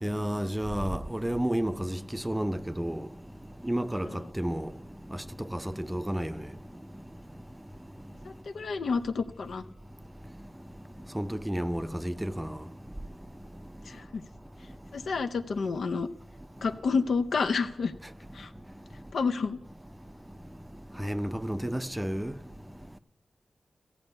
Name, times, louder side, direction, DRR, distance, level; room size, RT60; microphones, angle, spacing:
voice 1, 0.0-3.1 3.6-4.7 5.5-6.3 11.1-12.5 21.0-22.3, equal, 10° right, 0.5 m, -31 dB
voice 2, 8.2-9.6 13.9-14.2 14.9-16.1 16.6-17.9 18.3-18.5 19.1-19.6, left 4 dB, 85° left, 0.6 m, -29 dB
15.0 x 5.6 x 8.1 m
cardioid pair, 55°, 0 cm